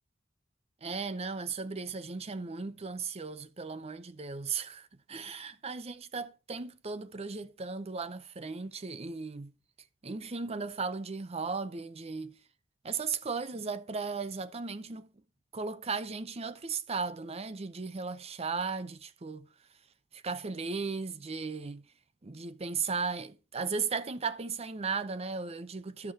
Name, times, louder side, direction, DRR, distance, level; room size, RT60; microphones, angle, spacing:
voice 1, 0.8-9.5 10.0-12.4 12.8-15.1 15.5-19.5 20.1-21.8 22.2-26.1, right 4 dB, 35° right, 0.6 m, -36 dB
12.0 x 5.9 x 4.6 m
head